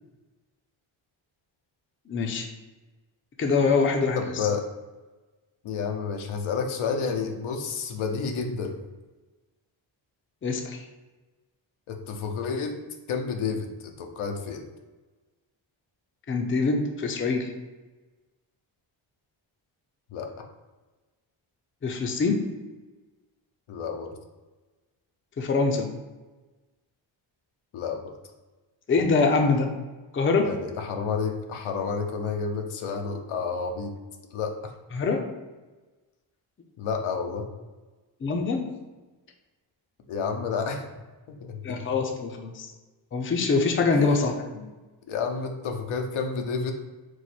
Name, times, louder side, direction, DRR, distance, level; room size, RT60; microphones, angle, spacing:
voice 1, 2.1-2.5 3.4-4.5 10.4-10.9 16.3-17.5 21.8-22.4 25.4-25.9 28.9-29.7 30.1-30.5 34.9-35.2 38.2-38.7 41.6-42.7 43.1-44.7, left 4 dB, 25° left, 4 dB, 0.4 m, -24 dB
voice 2, 4.2-4.6 5.6-8.7 11.9-12.8 13.1-14.6 20.1-20.3 23.7-24.1 27.7-28.0 30.4-33.9 34.3-34.7 36.8-37.4 40.1-40.9 41.4-41.9 43.9-44.3 45.1-46.7, left 5 dB, 85° left, 4 dB, 0.7 m, -30 dB
4.7 x 2.1 x 4.1 m, 1.2 s
wide cardioid pair, 110°, 48 cm